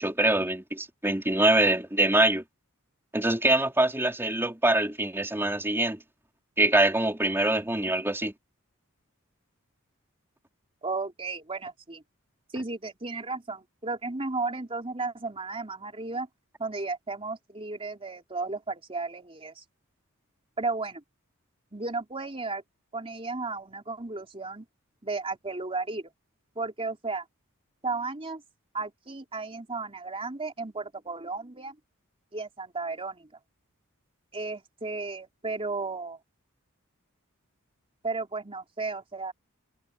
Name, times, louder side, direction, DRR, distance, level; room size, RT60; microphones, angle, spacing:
voice 1, 0.0-2.4 3.1-6.0 6.6-8.3, right 2 dB, 10° right, 3.6 m, -24 dB
voice 2, 10.8-12.0 12.5-16.3 16.6-19.6 20.6-21.0 21.7-22.6 22.9-24.7 25.0-26.1 26.6-27.2 27.8-28.4 28.7-31.8 32.3-33.3 34.3-36.2 38.0-39.3, right 3 dB, 25° right, 3.8 m, -34 dB
head